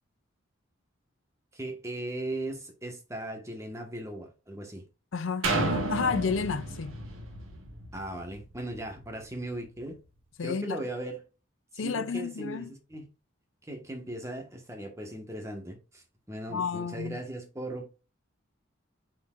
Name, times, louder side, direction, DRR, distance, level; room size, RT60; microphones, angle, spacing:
voice 1, 1.5-4.8 7.9-10.0 10.4-11.2 11.7-13.1 13.6-17.9, right 1 dB, 15° right, 1.4 m, -38 dB
voice 2, 5.1-7.0 10.4-10.8 11.8-12.7 16.5-17.2, left 5 dB, 75° left, 0.5 m, -31 dB
sound 1, 5.4-9.2 9.7-9.8, right 2 dB, 85° right, 1.4 m, -33 dB
9.5 x 4.4 x 2.5 m
head